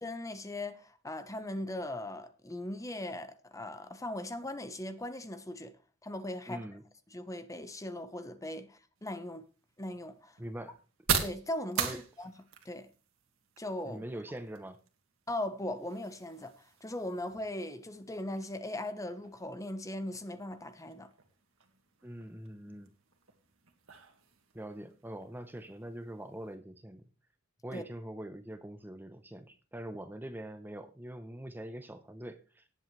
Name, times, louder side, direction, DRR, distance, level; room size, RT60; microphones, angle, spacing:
voice 1, 0.0-5.7 6.0-6.6 7.1-9.4 9.8-10.4 11.2-12.3 12.6-12.9 13.6-14.0 15.3-21.1 27.7-27.8, left 1 dB, 15° left, 1.0 m, -39 dB
voice 2, 6.5-6.8 10.4-10.8 11.8-12.0 13.8-14.8 22.0-22.9 24.5-27.0 27.6-32.6, right 1 dB, 10° right, 0.7 m, -43 dB
sound 1, 8.9-26.5, right 7 dB, 85° right, 2.0 m, -42 dB
18.0 x 7.8 x 3.2 m
head